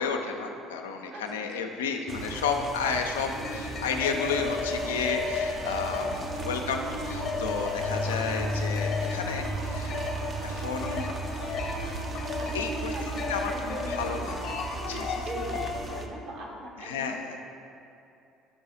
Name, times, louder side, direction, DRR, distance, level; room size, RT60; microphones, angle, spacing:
voice 1, 0.0-11.1 12.5-12.9 13.3-14.5 14.9-15.3 16.8-17.4, left 5 dB, 85° left, 3 dB, 0.4 m, -32 dB
voice 2, 1.1-1.7 5.8-6.4 7.8-8.4 12.4-14.5 15.3-17.2, right 1 dB, 50° right, -1 dB, 1.1 m, -41 dB
sound 1, 2.1-16.1, right 1 dB, 35° right, 0.6 m, -36 dB
sound 2, 3.2-16.0, left 4 dB, 55° left, 0.8 m, -34 dB
sound 3, 3.8-13.4, right 2 dB, 75° right, 0.8 m, -46 dB
5.7 x 4.7 x 4.1 m, 2.7 s
hypercardioid pair, 60°, 0 cm